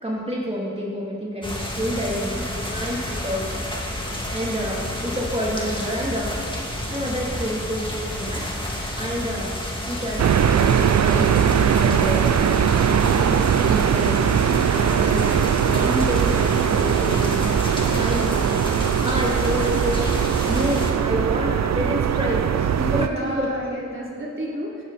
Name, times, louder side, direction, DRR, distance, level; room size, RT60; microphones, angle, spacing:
voice 1, 0.0-3.6 4.3-6.4 6.9-8.5 8.9-9.6 9.8-12.7 13.1-14.2 14.7-17.4 17.7-18.7 19.0-23.5, equal, 20° right, -5 dB, 3.2 m, -28 dB
sound 1, 1.4-20.9, left 1 dB, 15° left, 2.4 m, -30 dB
voice 2, 1.9-2.3 23.0-24.8, equal, 40° right, -4 dB, 3.4 m, -32 dB
sound 2, 10.2-23.1, right 8 dB, 65° right, 0.5 m, -20 dB
15.0 x 13.0 x 4.3 m, 2.5 s
cardioid pair, 55°, 30 cm